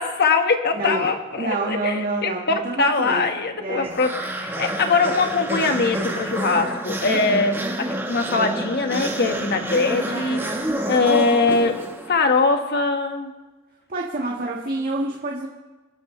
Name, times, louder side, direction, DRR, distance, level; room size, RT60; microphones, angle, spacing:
voice 1, 0.0-10.5 10.8-11.8 12.1-13.3, left 4 dB, 50° left, 5 dB, 1.5 m, -22 dB
voice 2, 0.7-1.1 1.4-3.2 3.5-3.9 10.0-10.7 13.9-15.5, right 2 dB, 45° right, -2 dB, 1.7 m, -28 dB
sound 1, 3.8-12.3, right 1 dB, 10° right, 1.3 m, -28 dB
28.0 x 12.5 x 3.3 m, 1.3 s
head